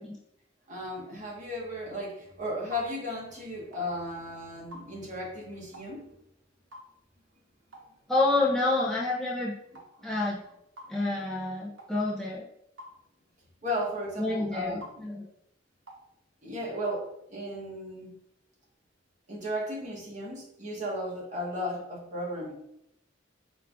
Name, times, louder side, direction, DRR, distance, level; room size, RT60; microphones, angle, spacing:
voice 1, 0.7-6.0 10.0-10.1 13.6-14.8 16.4-18.1 19.3-22.5, left 1 dB, 40° right, -3 dB, 1.2 m, -35 dB
sound 1, 2.7-2.9 3.7-3.9 4.7-4.9 5.7-5.9 6.7-6.9 7.7-7.9 8.7-8.9 9.8-9.9 10.8-11.0 11.8-11.9 12.8-13.0 13.8-14.0 14.8-15.0 15.9-16.1 16.9-17.0, left 1 dB, 80° right, 0.7 m, -46 dB
voice 2, 8.1-9.5 10.0-10.4 10.9-12.4 14.2-15.3, left 2 dB, 5° left, -7 dB, 0.5 m, -28 dB
4.5 x 2.3 x 3.5 m, 0.78 s
head